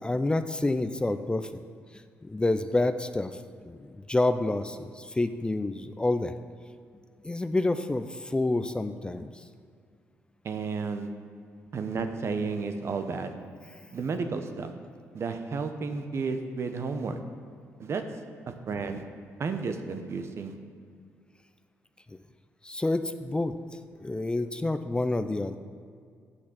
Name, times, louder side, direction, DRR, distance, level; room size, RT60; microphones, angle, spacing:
voice 1, 0.0-1.5 2.2-3.4 3.6-6.3 7.2-9.3 22.6-23.5 24.0-25.6, left 2 dB, 15° left, 10 dB, 0.5 m, -28 dB
voice 2, 10.4-11.1 11.7-13.3 13.9-14.7 15.1-17.2 17.8-18.0 18.5-19.0 19.4-20.5, right 4 dB, 55° right, 7 dB, 0.9 m, -32 dB
8.1 x 6.1 x 7.1 m, 2.2 s
supercardioid pair, 65°, 6 cm